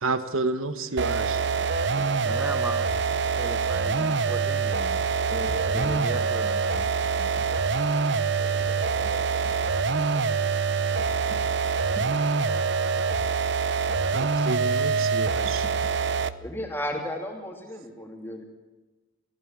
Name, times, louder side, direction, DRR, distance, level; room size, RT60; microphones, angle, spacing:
voice 1, 0.0-1.4 14.1-15.6, right 3 dB, 80° right, 11 dB, 1.4 m, -29 dB
sound 1, 1.0-16.5, right 5 dB, 55° right, 0.7 m, -25 dB
voice 2, 1.3-2.1 16.4-18.4, equal, 10° left, 3 dB, 2.7 m, -35 dB
voice 3, 1.9-5.3 5.7-7.3, right 1 dB, 10° right, 11 dB, 0.9 m, -39 dB
sound 2, 5.3-7.6 8.4-12.7 13.1-13.2 13.9-17.4, equal, 35° right, 2.0 m, -42 dB
19.5 x 15.5 x 8.9 m, 1.2 s
head